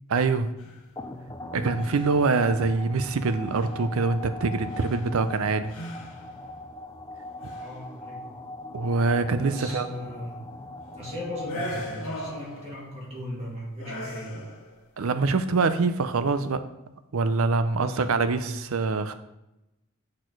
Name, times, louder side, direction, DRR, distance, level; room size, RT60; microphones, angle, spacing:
voice 1, 0.1-0.5 1.5-5.7 8.7-9.9 15.0-16.6 17.1-19.1, right 4 dB, 70° right, 11 dB, 0.5 m, -24 dB
sound 1, 0.6-0.9 1.7-2.4 3.1-3.2 3.5-3.8 4.7-5.4 5.7-6.4 7.3-7.8 11.4-12.9 13.8-14.8, equal, 85° left, 1.5 m, -38 dB
sound 2, 1.0-12.3, left 1 dB, 15° left, 0.4 m, -41 dB
voice 2, 7.6-8.2 9.4-10.4 10.9-14.4 17.7-18.5, left 1 dB, 30° right, -4 dB, 2.1 m, -38 dB
6.4 x 4.3 x 4.6 m, 0.94 s
head